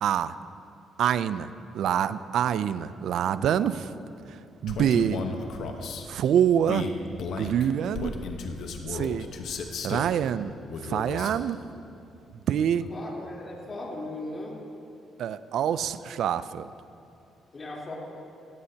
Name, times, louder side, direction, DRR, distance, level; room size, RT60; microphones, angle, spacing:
voice 1, 0.0-0.3 1.0-3.9 4.6-5.2 6.1-6.9 7.3-8.1 8.9-9.3 9.8-10.5 10.9-11.6 12.5-12.9 15.2-16.7, right 9 dB, 75° right, 14 dB, 0.4 m, -25 dB
Male speech man speaking, 4.7-6.1 6.6-10.1 10.7-11.4, left 4 dB, 70° left, 1.1 m, -34 dB
voice 2, 12.9-14.6 17.5-17.9, left 2 dB, 35° left, -4 dB, 3.6 m, -37 dB
17.5 x 16.5 x 2.9 m, 2.6 s
cardioid pair, 90°, 0 cm